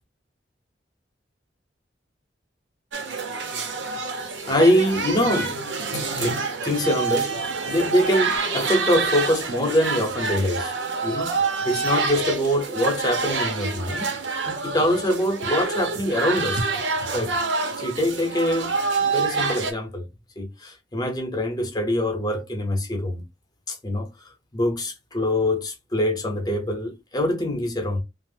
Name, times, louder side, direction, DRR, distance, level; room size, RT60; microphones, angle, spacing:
sound 1, 2.9-19.7, right 4 dB, 90° right, 0.7 m, -27 dB
voice 1, 4.5-5.6 5.9-10.7 11.0-11.4 11.7-14.1 14.4-16.7 17.1-20.1 20.4-23.2 23.7-24.1 24.5-28.0, left 1 dB, 20° left, 0.7 m, -24 dB
2.9 x 2.0 x 3.3 m
head